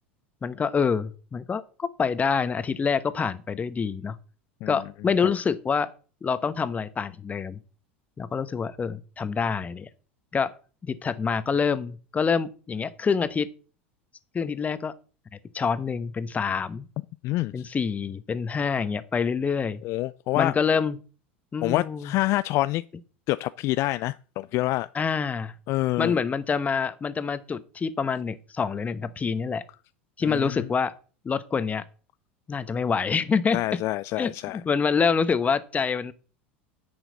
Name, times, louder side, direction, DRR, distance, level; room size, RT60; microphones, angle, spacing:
voice 1, 0.4-4.2 4.7-5.9 6.2-7.6 8.2-9.9 10.3-10.5 10.8-13.5 14.3-14.9 15.5-16.9 17.5-19.8 20.3-21.0 21.5-22.1 24.9-25.5 26.0-29.6 30.2-30.9 31.2-31.8 32.5-33.8 34.2-36.1, left 5 dB, 25° left, 1.0 m, -26 dB
voice 2, 17.2-17.7 19.8-20.5 21.6-22.8 23.3-24.9 25.7-26.1 30.2-30.6 33.5-34.6, left 18 dB, 50° left, 0.4 m, -27 dB
10.0 x 7.9 x 4.1 m
hypercardioid pair, 80°, 6 cm